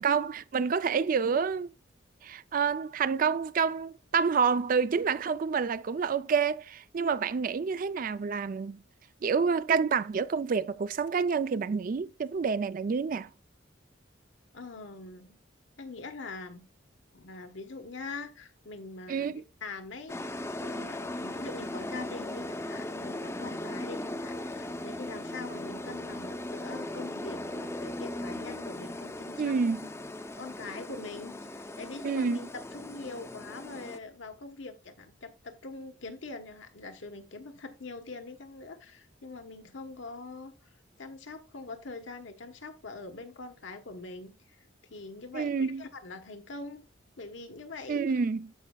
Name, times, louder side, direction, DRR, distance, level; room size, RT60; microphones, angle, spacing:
voice 1, 0.0-1.7 2.2-8.8 9.2-13.3 19.1-19.4 29.4-29.8 32.0-32.4 45.3-45.8 47.9-48.5, right 5 dB, 45° right, 0.4 m, -28 dB
voice 2, 14.5-15.4 15.8-16.7 17.1-20.2 20.6-29.6 30.4-32.5 32.7-40.7 41.0-44.6 44.9-46.8 47.2-48.2, left 3 dB, 80° left, 1.2 m, -43 dB
sound 1, 20.1-34.0, left 1 dB, 15° left, 0.6 m, -38 dB
14.0 x 5.2 x 2.3 m
head